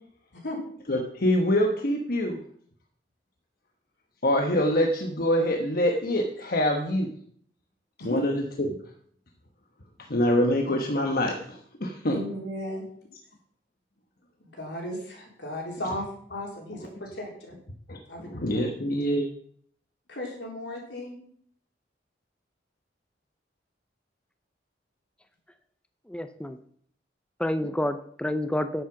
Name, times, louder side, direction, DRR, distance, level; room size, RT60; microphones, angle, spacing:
voice 1, 0.9-2.4 4.2-7.1 8.0-8.4 10.1-12.2 17.9-19.3, left 1 dB, 55° left, 2 dB, 1.2 m, -25 dB
voice 2, 12.1-12.8 14.4-17.6 18.1-18.3 20.1-21.2, left 1 dB, 80° left, -1 dB, 3.9 m, -35 dB
voice 3, 26.1-26.6 27.4-28.8, left 1 dB, 5° left, 9 dB, 0.5 m, -29 dB
9.9 x 7.7 x 5.8 m, 0.62 s
head